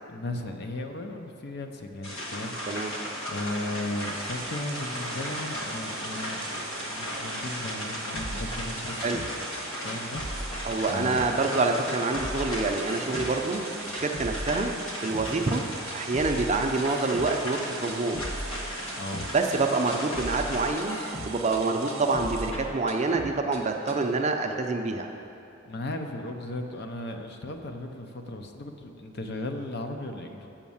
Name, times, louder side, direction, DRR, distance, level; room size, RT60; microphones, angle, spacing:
voice 1, 0.1-2.6 3.3-6.5 6.8-9.3 9.8-11.3 19.0-19.3 25.7-30.5, left 2 dB, 50° left, 5 dB, 0.6 m, -36 dB
sound 1, 2.0-20.7, equal, 80° left, 1.4 m, -36 dB
sound 2, 4.0-22.5, right 5 dB, 70° right, 0.8 m, -42 dB
sound 3, 8.1-9.6 9.9-11.6 11.9-13.6 13.9-15.6 15.9-17.6 17.9-19.6 19.9-21.6 21.9-23.6 23.9-24.0, equal, 30° left, 1.1 m, -37 dB
voice 2, 10.6-14.7 15.0-15.6 15.9-18.3 19.3-21.0 21.3-25.1, right 3 dB, 35° right, 4 dB, 0.5 m, -27 dB
7.3 x 6.3 x 7.1 m, 2.9 s
head